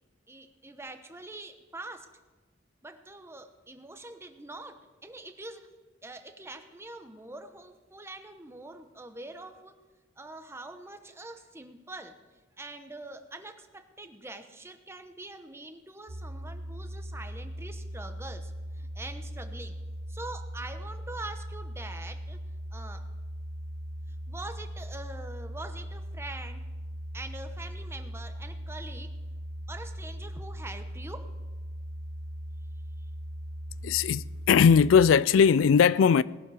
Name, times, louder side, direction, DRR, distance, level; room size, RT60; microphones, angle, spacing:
voice 1, 0.3-2.1 2.8-5.7 6.0-9.8 10.2-12.2 12.6-19.8 20.1-22.4 22.7-23.0 24.1-26.6 27.1-29.1 29.7-31.3 33.0-33.1, right 2 dB, 15° right, 1.0 m, -44 dB
sound 1, 16.1-35.1, equal, 65° right, 1.0 m, -39 dB
voice 2, 33.8-36.2, left 6 dB, 90° left, 0.3 m, -20 dB
19.5 x 12.0 x 4.9 m
head